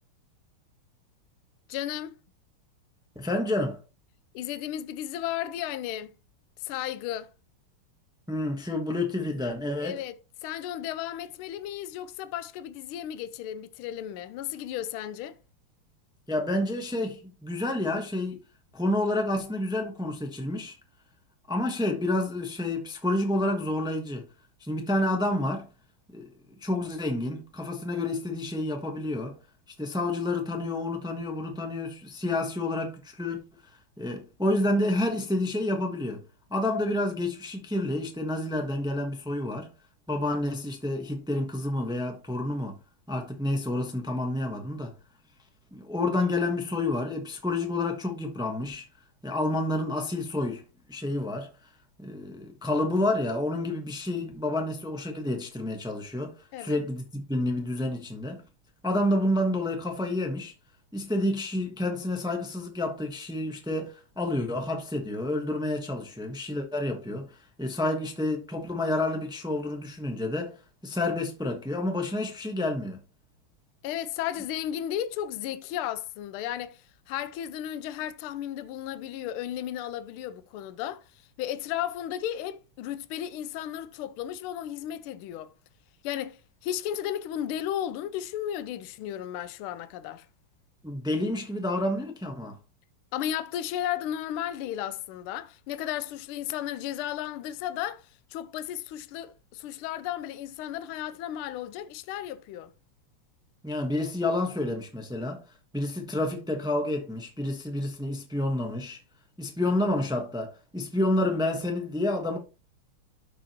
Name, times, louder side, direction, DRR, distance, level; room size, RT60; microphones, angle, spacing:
voice 1, 1.7-2.1 4.3-6.1 6.6-7.3 9.8-15.4 56.5-56.8 73.8-85.5 86.0-90.3 93.1-102.7, left 11 dB, 80° left, 1.4 m, -34 dB
voice 2, 3.1-3.8 8.3-10.0 16.3-18.4 18.7-20.7 21.5-24.3 24.6-25.7 26.1-26.3 26.6-29.4 29.8-33.4 34.0-36.2 36.5-39.7 40.1-42.8 43.1-44.9 45.7-48.8 49.2-50.6 50.9-51.5 52.0-58.4 58.8-60.5 60.9-67.3 67.6-70.5 70.8-73.0 90.8-92.6 103.6-105.4 105.7-109.0 109.4-112.4, left 1 dB, 5° right, 0.7 m, -29 dB
12.5 x 4.9 x 2.9 m
omnidirectional pair, 2.4 m